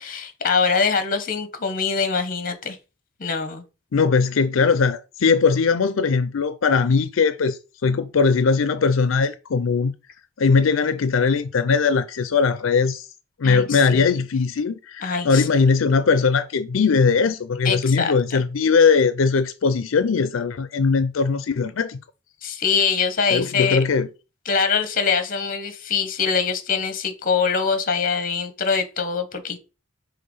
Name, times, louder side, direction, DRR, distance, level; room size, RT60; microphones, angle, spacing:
voice 1, 0.0-2.8 3.2-3.6 13.4-14.1 15.0-15.5 17.6-18.4 22.4-23.9 24.4-29.6, left 5 dB, 45° left, 1.1 m, -23 dB
voice 2, 3.9-9.9 10.4-13.0 13.4-22.0 23.3-24.1, left 5 dB, 85° left, 0.5 m, -20 dB
5.7 x 3.4 x 5.5 m
head